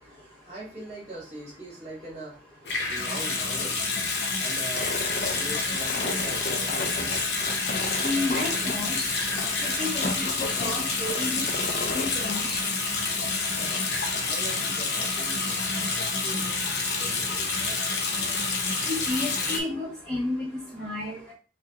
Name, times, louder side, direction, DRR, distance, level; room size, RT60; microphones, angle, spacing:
voice 1, 0.0-2.4 2.9-3.8 4.4-5.0 5.4-7.2 13.6-13.8 14.2-16.6 17.0-17.5 18.2-18.4, right 2 dB, 40° right, -6 dB, 2.0 m, -42 dB
Water tap faucet / Sink (filling or washing) / Bathtub (filling or washing), 2.6-19.6, left 3 dB, 75° left, 0.8 m, -28 dB
sound 1, 4.7-12.7, left 2 dB, 45° left, 0.5 m, -36 dB
voice 2, 8.0-9.0 9.4-11.4 11.9-12.6 18.8-20.4 20.7-21.2, left 2 dB, 5° left, -7 dB, 1.5 m, -31 dB
4.8 x 2.2 x 2.9 m, 0.35 s
head